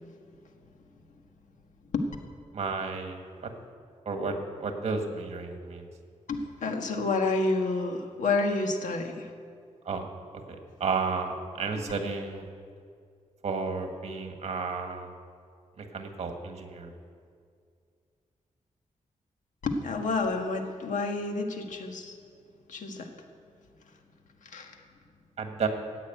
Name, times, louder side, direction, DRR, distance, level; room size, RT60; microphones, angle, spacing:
voice 1, 2.5-3.5 4.0-5.9 9.8-10.0 10.8-12.5 13.4-15.1 15.8-16.9 25.4-25.7, right 4 dB, 55° right, 4 dB, 1.7 m, -32 dB
voice 2, 6.3-9.3 11.7-11.8 19.6-22.2 22.7-23.1 24.4-24.8, left 3 dB, 85° left, 4 dB, 1.5 m, -29 dB
14.5 x 8.5 x 9.1 m, 2.2 s
wide cardioid pair, 180°, 13 cm